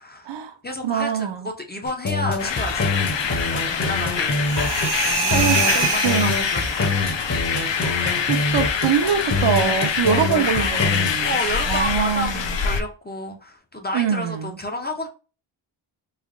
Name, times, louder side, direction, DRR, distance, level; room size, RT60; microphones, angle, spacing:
voice 1, 0.0-0.4 0.6-4.7 5.1-7.1 10.1-10.8 11.2-15.1, left 1 dB, 20° left, 0.5 m, -31 dB
voice 2, 0.8-1.5 4.5-5.0 5.3-6.3 7.8-11.4 11.7-12.6 13.9-14.6, right 7 dB, 60° right, 0.6 m, -24 dB
sound 1, 1.9-11.2, left 3 dB, 35° left, 0.8 m, -25 dB
sound 2, 2.4-12.8, left 6 dB, 65° left, 0.6 m, -25 dB
sound 3, 4.4-7.1, right 4 dB, 80° right, 0.9 m, -25 dB
3.2 x 2.2 x 3.6 m
wide cardioid pair, 100°, 49 cm